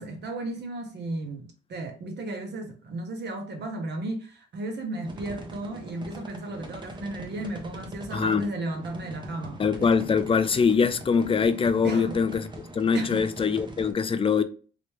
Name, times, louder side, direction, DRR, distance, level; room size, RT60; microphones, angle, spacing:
voice 1, 0.0-9.6 11.8-12.2 12.9-13.3, right 2 dB, 60° right, 1.1 m, -34 dB
sound 1, 5.0-13.9, right 1 dB, 25° right, 0.8 m, -42 dB
voice 2, 8.1-8.5 9.6-12.5 12.7-14.4, left 6 dB, 25° left, 0.4 m, -23 dB
3.1 x 3.0 x 3.1 m
cardioid pair, 90°, 20 cm